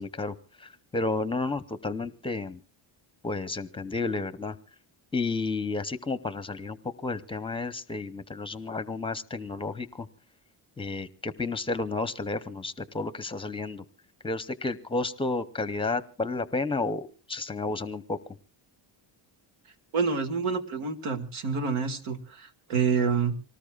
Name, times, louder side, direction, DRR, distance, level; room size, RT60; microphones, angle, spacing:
voice 1, 0.0-2.6 3.2-4.6 5.1-10.1 10.8-13.8 14.2-18.2, left 3 dB, 10° left, 13 dB, 0.7 m, -31 dB
voice 2, 19.9-23.3, right 5 dB, 85° right, 6 dB, 2.1 m, -28 dB
25.0 x 19.0 x 2.4 m, 0.36 s
cardioid pair, 140°, 48 cm